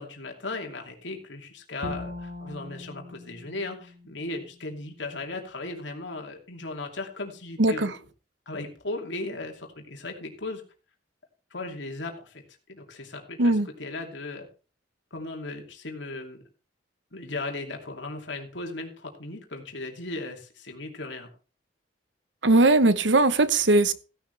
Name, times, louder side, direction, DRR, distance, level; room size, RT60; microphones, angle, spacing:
voice 1, 0.0-8.0 8.5-10.6 11.5-12.4 12.7-14.5 15.1-16.4 17.1-21.3, left 2 dB, 80° left, 2.7 m, -37 dB
Bowed string instrument, 1.8-4.9, left 2 dB, 60° right, 3.4 m, -41 dB
voice 2, 7.6-7.9 13.4-13.7 22.4-23.9, right 2 dB, 80° right, 1.1 m, -19 dB
16.0 x 11.5 x 3.4 m
head